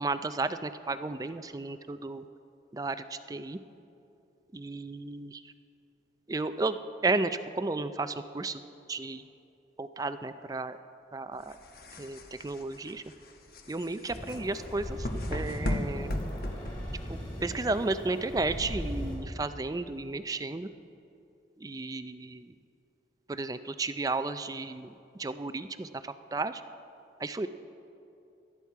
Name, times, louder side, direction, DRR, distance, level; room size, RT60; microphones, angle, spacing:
voice 1, 0.0-2.2 2.7-3.6 4.5-5.5 6.3-6.8 7.0-8.6 8.9-9.2 9.8-10.8 11.1-11.6 12.0-13.0 13.7-16.1 17.1-20.7 21.6-22.5 23.3-26.6 27.2-27.5, right 3 dB, 20° right, 11 dB, 0.4 m, -33 dB
sound 1, 11.4-17.3, left 1 dB, 55° left, 1.0 m, -37 dB
sound 2, 14.1-19.2, equal, 25° left, 4.0 m, -38 dB
18.5 x 12.5 x 4.6 m, 2.7 s
head